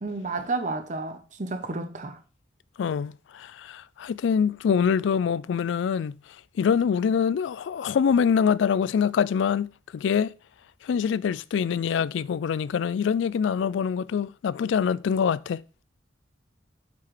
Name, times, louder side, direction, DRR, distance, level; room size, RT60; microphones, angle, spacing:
voice 1, 0.0-2.2, right 3 dB, 40° right, 0.8 m, -31 dB
voice 2, 2.8-6.1 6.6-10.3 10.8-15.6, left 7 dB, 75° left, 0.3 m, -25 dB
7.3 x 5.9 x 3.2 m
head